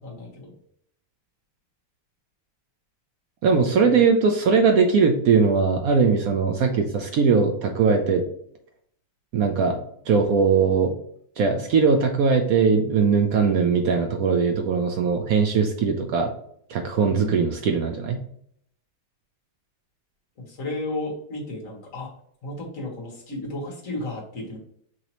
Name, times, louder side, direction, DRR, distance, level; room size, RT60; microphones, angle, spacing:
voice 1, 0.0-0.5 3.8-4.0 17.1-17.3 20.4-22.1 22.4-24.6, left 2 dB, 45° left, -3 dB, 1.8 m, -33 dB
voice 2, 3.4-8.2 9.3-9.8 10.1-11.0 11.4-16.3 16.7-18.2, right 5 dB, 75° right, 3 dB, 0.8 m, -20 dB
6.1 x 2.8 x 2.9 m, 0.68 s
omnidirectional pair, 2.1 m